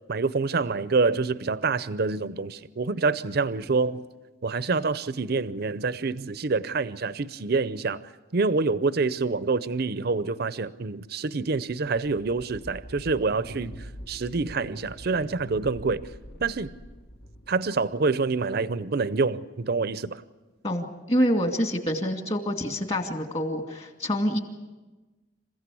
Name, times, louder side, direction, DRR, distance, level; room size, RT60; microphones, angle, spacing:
voice 1, 0.1-4.0 4.4-8.0 8.3-13.7 14.1-16.1 16.4-16.7 17.5-20.2, right 4 dB, 55° right, 0.6 m, -26 dB
sound 1, 12.0-18.3, equal, 60° left, 1.5 m, -44 dB
voice 2, 20.6-24.4, equal, 35° left, 2.3 m, -26 dB
27.5 x 15.5 x 8.4 m
head